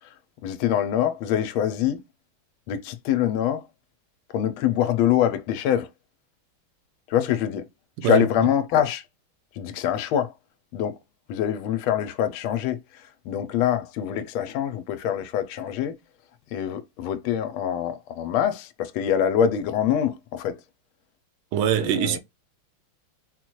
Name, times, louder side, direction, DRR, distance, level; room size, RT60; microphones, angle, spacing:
voice 1, 0.4-2.0 2.7-3.6 4.3-5.9 7.1-7.7 8.0-9.0 9.6-10.3 10.7-11.0 11.3-12.8 13.3-16.0 16.5-20.5 21.9-22.2, left 10 dB, 80° left, 1.3 m, -24 dB
voice 2, 21.5-22.2, right 10 dB, 85° right, 1.5 m, -23 dB
4.0 x 2.2 x 2.9 m
omnidirectional pair, 2.3 m